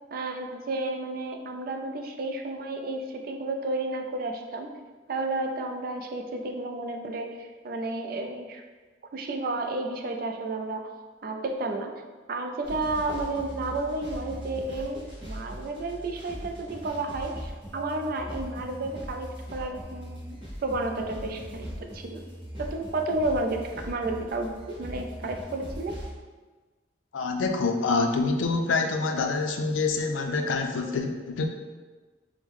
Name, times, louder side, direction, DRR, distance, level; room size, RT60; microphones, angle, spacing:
voice 1, 0.1-4.7 5.1-8.6 9.1-10.9 11.2-11.9 12.3-22.2 22.6-26.0, right 2 dB, 50° right, 4 dB, 0.4 m, -32 dB
sound 1, 12.6-26.1, equal, 30° right, 1.0 m, -40 dB
voice 2, 27.1-31.5, left 3 dB, 85° left, 5 dB, 0.4 m, -26 dB
4.6 x 2.1 x 3.5 m, 1.3 s
head